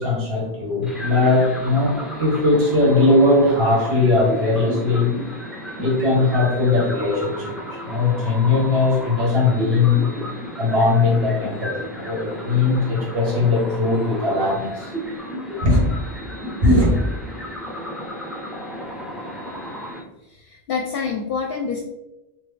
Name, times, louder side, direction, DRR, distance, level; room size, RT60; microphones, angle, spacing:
voice 1, 0.0-5.1 5.8-10.1 10.6-14.9 15.6-15.9 16.6-17.0, left 2 dB, 70° right, -4 dB, 1.5 m, -19 dB
sound 1, 0.8-20.0, equal, ahead, 0.5 m, -33 dB
voice 2, 20.2-21.8, left 5 dB, 65° left, 0 dB, 0.7 m, -27 dB
3.7 x 2.7 x 3.3 m, 0.97 s
omnidirectional pair, 1.1 m